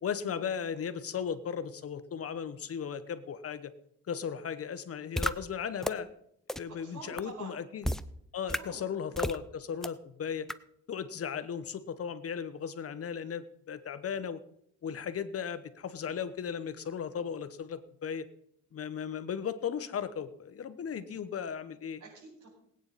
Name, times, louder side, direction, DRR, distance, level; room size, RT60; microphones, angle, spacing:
voice 1, 0.0-3.7 4.1-6.1 6.6-7.8 8.3-10.5 10.9-14.4 14.8-18.3 18.7-22.0, left 7 dB, 50° left, 12 dB, 1.1 m, -36 dB
sound 1, 5.2-5.3 5.8-5.9 6.5-6.6 7.2-7.3 7.8-8.0 8.5-8.6 9.2-9.4 9.8-9.9 10.5-10.6, equal, ahead, 0.5 m, -30 dB
voice 2, 6.8-7.6 8.5-8.8 22.0-22.5, right 4 dB, 70° right, -6 dB, 5.3 m, -47 dB
20.5 x 9.0 x 4.2 m, 0.71 s
cardioid pair, 90°, 30 cm